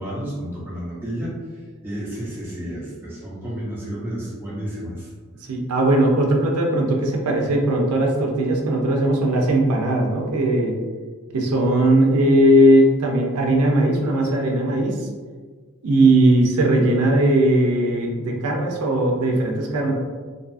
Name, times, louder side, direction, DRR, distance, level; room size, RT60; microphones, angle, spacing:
voice 1, 0.0-5.1, equal, 10° right, -7 dB, 0.5 m, -31 dB
voice 2, 5.5-10.8 11.3-15.0 15.8-19.9, right 1 dB, 85° right, 1 dB, 0.4 m, -18 dB
2.6 x 2.3 x 2.5 m, 1.5 s
head